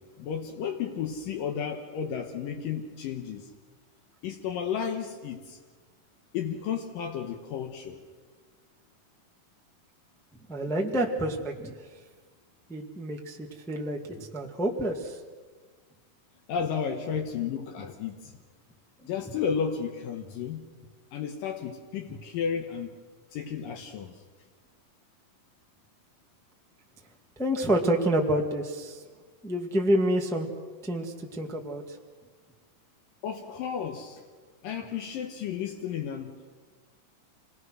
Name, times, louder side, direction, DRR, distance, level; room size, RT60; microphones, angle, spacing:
voice 1, 0.0-3.5 4.2-5.6 6.3-8.0 16.5-18.3 19.1-20.7 21.1-23.0 23.3-24.2 33.2-34.2 34.6-36.6, left 7 dB, 80° left, 3 dB, 2.8 m, -33 dB
voice 2, 10.5-11.7 12.7-15.2 19.0-19.1 27.4-29.0 29.4-30.5 30.8-32.0, right 1 dB, ahead, 0 dB, 0.6 m, -28 dB
28.0 x 20.0 x 6.3 m, 1.5 s
omnidirectional pair, 4.0 m